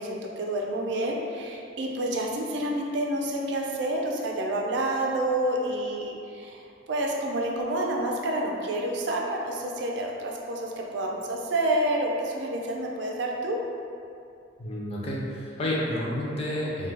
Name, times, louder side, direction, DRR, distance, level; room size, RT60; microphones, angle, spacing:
voice 1, 0.0-6.6 6.9-13.6, right 1 dB, 70° right, 0 dB, 0.3 m, -29 dB
voice 2, 14.6-16.9, left 1 dB, 35° left, -5 dB, 0.4 m, -30 dB
2.2 x 2.1 x 3.2 m, 2.5 s
head